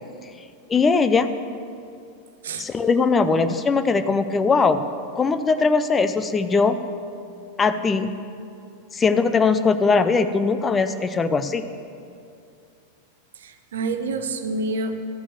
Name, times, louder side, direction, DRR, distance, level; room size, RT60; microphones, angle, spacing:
voice 1, 0.7-1.3 2.6-4.8 5.2-6.8 7.6-8.1 8.9-11.7, left 4 dB, 20° left, 10 dB, 0.5 m, -20 dB
voice 2, 13.3-15.0, right 3 dB, 60° right, 8 dB, 0.8 m, -28 dB
12.5 x 6.1 x 8.0 m, 2.4 s
figure-of-eight pair, 90°, 0 cm